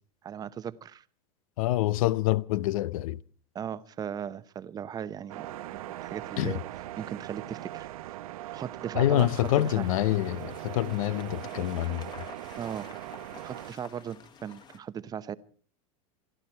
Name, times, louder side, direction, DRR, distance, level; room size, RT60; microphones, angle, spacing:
voice 1, 0.2-1.0 3.5-5.5 5.7-6.6 7.0-7.9 8.5-9.9 12.6-12.9 13.4-15.4, right 8 dB, 20° right, 0.8 m, -37 dB
voice 2, 1.6-3.2 6.4-6.6 8.9-12.1, left 14 dB, 70° left, 0.8 m, -26 dB
sound 1, 5.3-13.7, right 14 dB, 80° right, 0.8 m, -40 dB
sound 2, 9.2-14.8, left 6 dB, 25° left, 1.6 m, -51 dB
27.5 x 11.5 x 4.4 m
supercardioid pair, 140°, 18 cm